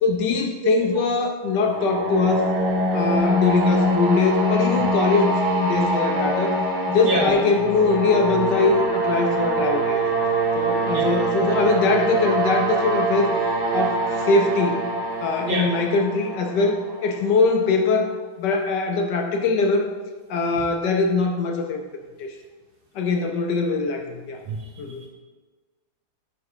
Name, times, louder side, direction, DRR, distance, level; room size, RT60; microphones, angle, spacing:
voice 1, 0.0-2.4 2.9-5.3 5.6-6.6 6.9-10.0 10.5-13.3 13.7-14.8 15.2-19.9 20.3-21.8 22.2-22.3 22.9-24.4 24.8-25.0, left 3 dB, 70° left, 4 dB, 1.1 m, -22 dB
sound 1, 1.6-17.4, right 1 dB, 55° right, 1.7 m, -24 dB
voice 2, 7.0-7.3 10.9-11.1 15.4-15.6 24.5-24.6, right 2 dB, 70° right, -5 dB, 1.8 m, -24 dB
7.1 x 4.1 x 4.9 m, 1.3 s
omnidirectional pair, 2.3 m